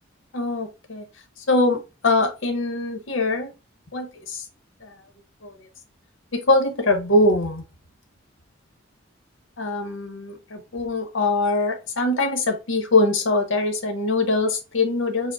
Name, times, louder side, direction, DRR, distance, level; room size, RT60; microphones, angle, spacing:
voice 1, 0.3-1.0 1.5-3.5 3.9-4.4 4.8-4.9 5.4-5.5 6.3-7.6 9.6-15.3, left 2 dB, 75° left, 0.9 m, -22 dB
4.9 x 2.1 x 4.1 m
head